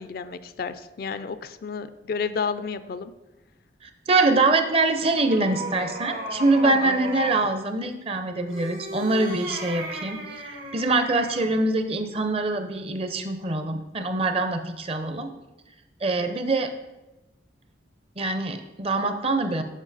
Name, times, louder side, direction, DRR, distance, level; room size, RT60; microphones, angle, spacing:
voice 1, 0.0-3.1 6.6-6.9, left 5 dB, 55° left, 12 dB, 0.4 m, -31 dB
voice 2, 3.8-15.3 16.0-16.7 18.2-19.6, right 2 dB, 35° right, 8 dB, 0.6 m, -24 dB
sound 1, 4.5-7.5 8.4-11.6, right 1 dB, 55° right, 1.0 m, -36 dB
7.3 x 5.6 x 4.1 m, 1.0 s
head